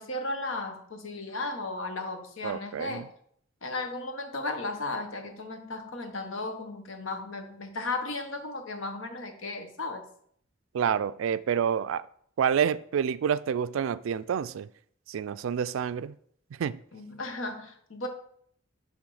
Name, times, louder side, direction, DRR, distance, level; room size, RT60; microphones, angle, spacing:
voice 1, 0.0-3.0 3.6-10.0 16.9-18.1, left 2 dB, 75° left, 1.2 m, -35 dB
voice 2, 2.4-3.0 10.7-12.0 12.4-14.7 15.1-16.1 16.6-16.8, right 7 dB, 75° right, 0.3 m, -28 dB
10.0 x 3.5 x 4.8 m
head